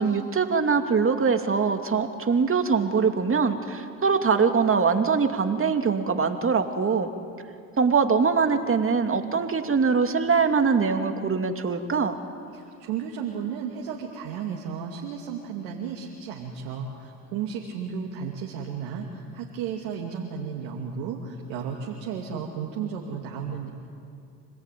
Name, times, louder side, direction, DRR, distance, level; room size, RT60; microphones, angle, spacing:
voice 1, 0.0-7.1 7.8-12.1, right 5 dB, 35° right, 6 dB, 2.5 m, -23 dB
voice 2, 12.5-19.1 19.3-23.7, right 7 dB, 85° right, 0 dB, 2.6 m, -33 dB
26.0 x 19.0 x 9.3 m, 2.4 s
supercardioid pair, 70°, 37 cm